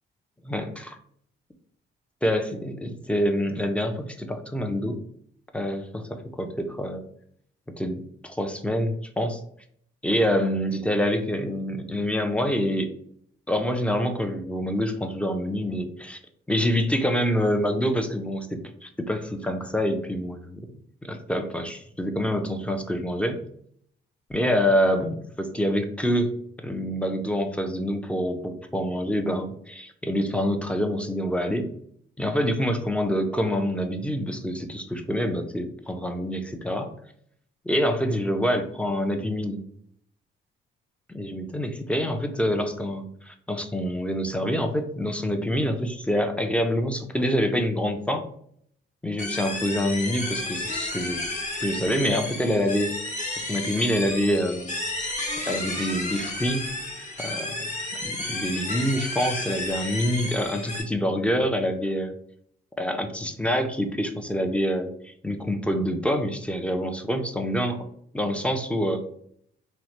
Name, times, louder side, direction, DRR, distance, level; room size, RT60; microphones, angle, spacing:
voice 1, 0.4-1.0 2.2-5.0 5.5-7.0 7.8-9.4 10.0-12.9 13.5-16.2 16.5-20.7 21.0-23.4 24.3-26.3 26.6-31.7 32.2-36.9 37.7-39.6 41.1-48.3 49.0-51.2 51.6-52.9 53.5-54.8 55.5-56.7 57.2-57.7 58.0-62.1 62.8-67.9 68.1-69.1, equal, 5° left, 6 dB, 0.4 m, -26 dB
sound 1, 49.2-60.8, left 2 dB, 40° left, 0.9 m, -32 dB
3.0 x 2.0 x 2.9 m, 0.65 s
cardioid pair, 90°, 20 cm